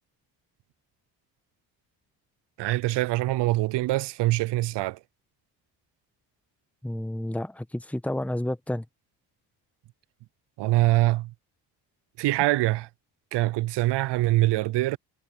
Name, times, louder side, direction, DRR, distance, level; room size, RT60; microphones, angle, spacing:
voice 1, 2.6-5.0 10.6-11.3 12.2-12.9 13.3-15.0, right 17 dB, 60° right, 0.7 m, -24 dB
voice 2, 6.8-8.8, left 1 dB, 5° left, 1.6 m, -30 dB
hypercardioid pair, 50°, 47 cm